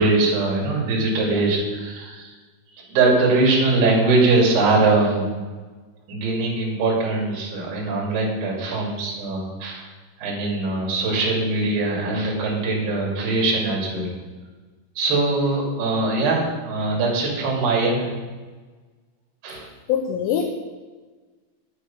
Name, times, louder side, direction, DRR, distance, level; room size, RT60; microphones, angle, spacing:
voice 1, 0.0-2.3 2.8-5.3 6.1-9.9 10.2-14.1 15.0-18.1 19.4-19.7, right 3 dB, 55° right, -3 dB, 4.6 m, -21 dB
voice 2, 19.9-20.4, left 8 dB, 85° left, 2 dB, 3.6 m, -22 dB
9.7 x 9.4 x 5.5 m, 1.3 s
omnidirectional pair, 5.7 m